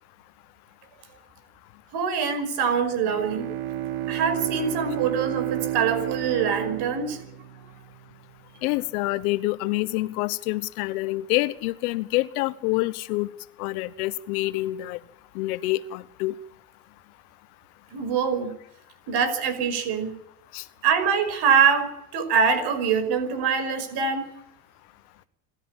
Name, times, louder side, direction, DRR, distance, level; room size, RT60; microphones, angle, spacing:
voice 1, 1.9-3.5 4.1-7.2 17.9-18.6 19.1-20.2 20.8-24.3, right 6 dB, 60° right, 11 dB, 5.5 m, -24 dB
Bowed string instrument, 3.0-8.2, right 13 dB, 80° right, 1.9 m, -31 dB
voice 2, 8.6-13.3 13.6-15.0 15.3-16.3 20.5-20.6, left 19 dB, 80° left, 15 dB, 1.2 m, -27 dB
26.5 x 13.0 x 8.9 m, 0.79 s
supercardioid pair, 95°, 44 cm